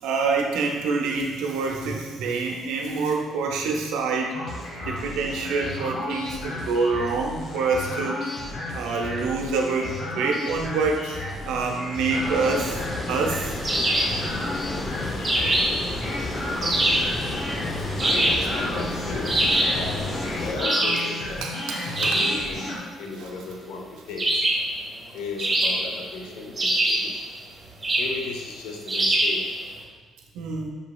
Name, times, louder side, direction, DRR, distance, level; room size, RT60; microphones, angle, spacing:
voice 1, 0.0-4.4 4.8-8.2 8.7-12.8 13.1-13.5 21.4-22.2 30.3-30.7, right 4 dB, 80° right, 1 dB, 0.5 m, -26 dB
sound 1, 4.3-22.8, left 1 dB, 55° left, 1.3 m, -33 dB
voice 2, 11.2-11.8 18.0-19.4 19.7-20.0 20.4-21.4 22.0-22.7 23.0-24.5 25.1-27.2 28.0-29.6, left 3 dB, 80° left, 1 dB, 0.6 m, -35 dB
Water, 12.1-20.5, left 2 dB, 40° left, 0.6 m, -32 dB
sound 2, 13.6-14.2 15.2-15.8 16.6-17.1 18.0-18.5 19.2-19.8 20.6-21.1 21.9-22.4 24.2-24.7 25.4-26.1 26.6-27.1 27.8-28.2 28.9-29.4, right 1 dB, 35° right, 1.4 m, -23 dB
6.8 x 2.8 x 2.2 m, 1.3 s
supercardioid pair, 60°, 0 cm